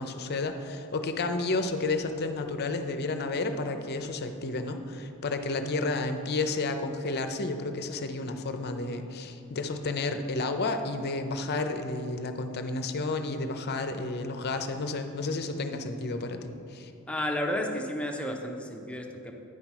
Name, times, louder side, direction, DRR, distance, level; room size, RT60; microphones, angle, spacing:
voice 1, 0.0-16.9, left 3 dB, 50° left, 7 dB, 0.6 m, -31 dB
voice 2, 17.1-19.3, left 1 dB, 5° left, 1 dB, 0.6 m, -32 dB
9.6 x 5.8 x 4.6 m, 2.8 s
head